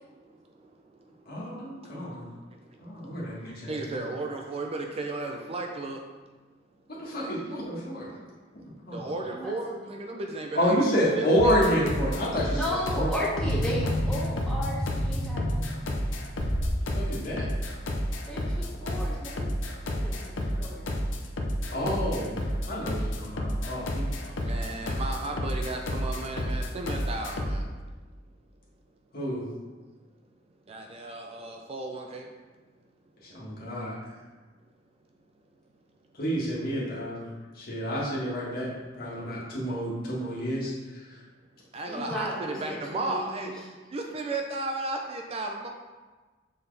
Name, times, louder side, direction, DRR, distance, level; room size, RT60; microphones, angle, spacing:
voice 1, 1.3-2.2 2.8-3.7 6.9-8.1 8.9-9.1 10.5-13.1 16.9-17.5 21.7-22.3 22.7-24.3 29.1-29.4 33.3-33.9 36.2-37.3 37.6-38.7 39.0-40.7, equal, 55° left, -6 dB, 1.6 m, -29 dB
voice 2, 3.7-6.0 8.9-11.9 24.4-27.6 30.7-32.3 41.7-43.5 43.9-45.7, right 2 dB, 35° right, 2 dB, 0.4 m, -34 dB
voice 3, 9.3-9.8 12.5-15.6 18.3-19.5 19.9-20.9 40.0-40.2 41.9-43.5, equal, 5° left, -9 dB, 1.7 m, -35 dB
sound 1, 11.4-27.7, equal, 85° left, 0.7 m, -30 dB
sound 2, 13.3-16.8 17.2-17.4, equal, 15° right, 1.8 m, -31 dB
6.7 x 4.2 x 3.3 m, 1.3 s
head